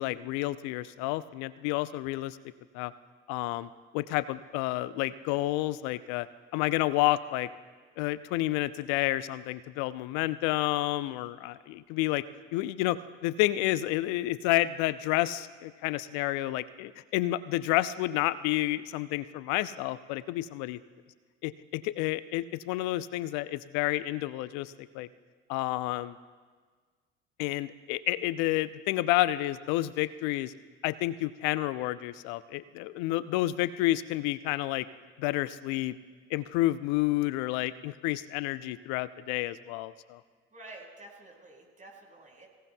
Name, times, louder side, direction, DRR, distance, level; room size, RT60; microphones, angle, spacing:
voice 1, 0.0-2.4 2.7-2.9 3.3-6.3 6.5-7.5 8.0-12.2 12.5-20.8 21.4-25.1 25.5-26.2 27.4-30.5 30.8-34.9 35.2-35.9 36.3-40.2, left 16 dB, 55° left, 16 dB, 0.6 m, -30 dB
voice 2, 40.5-42.5, right 2 dB, 25° right, -1 dB, 4.9 m, -49 dB
24.5 x 17.0 x 2.3 m, 1.5 s
figure-of-eight pair, 65°, 33 cm